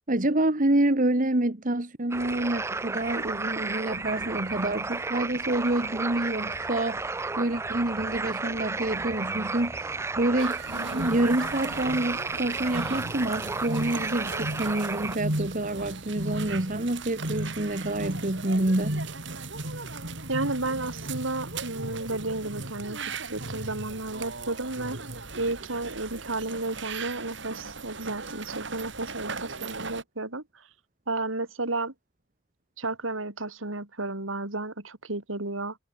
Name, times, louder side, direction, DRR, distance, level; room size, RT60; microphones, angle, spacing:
voice 1, 0.1-10.6 10.9-19.0, right 1 dB, 40° right, 1.6 m, -27 dB
sound 1, 2.1-15.2, right 3 dB, 15° right, 0.4 m, -33 dB
sound 2, 10.4-30.0, right 2 dB, 65° right, 4.7 m, -36 dB
voice 2, 20.3-25.0 25.4-30.4 31.1-31.9 32.8-35.8, right 2 dB, 80° right, 3.7 m, -32 dB
head